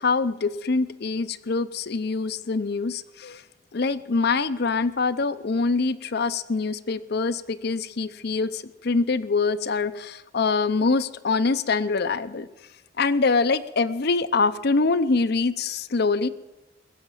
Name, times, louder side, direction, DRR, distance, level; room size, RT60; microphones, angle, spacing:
voice 1, 0.0-3.4 3.7-12.5 13.0-16.3, left 4 dB, 60° left, 14 dB, 0.6 m, -24 dB
21.5 x 7.2 x 8.9 m, 1.0 s
head